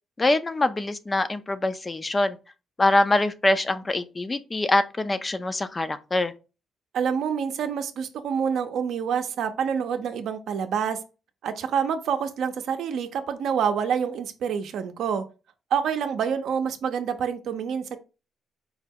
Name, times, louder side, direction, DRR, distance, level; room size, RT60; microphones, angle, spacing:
voice 1, 0.2-2.4 2.8-6.3, left 2 dB, 25° left, 0.4 m, -24 dB
voice 2, 6.9-11.0 11.4-15.3 15.7-18.0, right 7 dB, 75° right, 0.6 m, -27 dB
4.7 x 2.2 x 3.5 m
cardioid pair, 90°, 0 cm